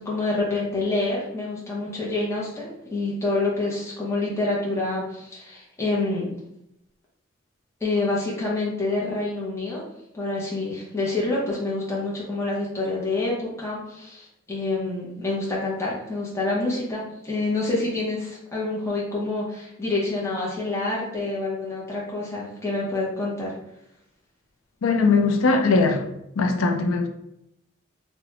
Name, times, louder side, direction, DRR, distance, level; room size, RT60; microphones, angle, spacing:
voice 1, 0.0-6.3 7.8-9.9 10.1-23.6, left 2 dB, 15° left, 0.6 m, -27 dB
voice 2, 24.8-26.1 26.4-27.1, left 3 dB, 90° left, 0.4 m, -20 dB
2.9 x 2.1 x 2.8 m
head